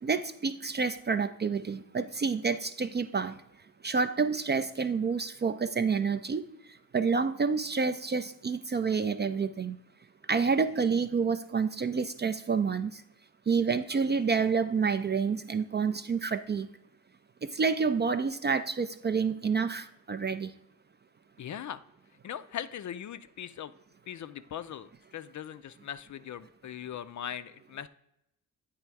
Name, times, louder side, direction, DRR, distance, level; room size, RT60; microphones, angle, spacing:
voice 1, 0.0-3.4 3.8-6.4 6.9-9.8 10.3-13.0 13.5-16.7 17.4-20.5, right 5 dB, 25° right, 11 dB, 0.4 m, -28 dB
voice 2, 21.4-21.8 22.2-23.7 24.1-27.9, left 9 dB, 45° left, 12 dB, 0.4 m, -40 dB
8.4 x 3.4 x 4.6 m, 0.81 s
supercardioid pair, 45°, 41 cm